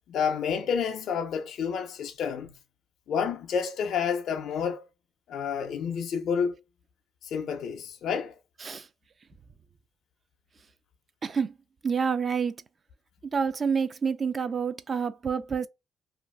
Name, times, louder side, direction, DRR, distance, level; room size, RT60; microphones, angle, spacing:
voice 1, 0.1-2.5 3.1-4.9 5.3-6.6 7.2-8.3, left 7 dB, 70° left, 0.4 m, -29 dB
voice 2, 11.2-11.5 11.8-12.6 13.3-15.7, right 6 dB, 40° right, 0.3 m, -28 dB
2.5 x 2.3 x 3.2 m
cardioid pair, 90°, 0 cm